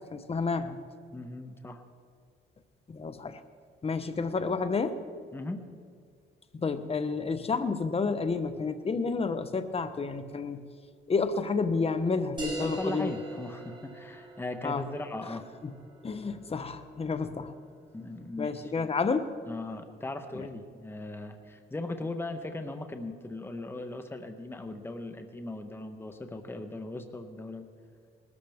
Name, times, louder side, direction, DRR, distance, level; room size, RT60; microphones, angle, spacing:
voice 1, 0.1-0.8 2.9-3.4 3.8-5.0 6.5-10.7 11.1-13.1 14.6-14.8 15.3-15.7 16.0-17.5 18.4-19.3 20.3-20.5, left 4 dB, 30° left, 10 dB, 0.9 m, -30 dB
voice 2, 1.1-1.8 5.3-5.7 12.6-15.4 17.9-18.7 19.5-27.7, left 2 dB, 10° left, 6 dB, 1.0 m, -38 dB
sound 1, 12.4-17.5, right 1 dB, 25° right, 4.2 m, -41 dB
20.0 x 13.0 x 3.5 m, 2.1 s
cardioid pair, 90°, 20 cm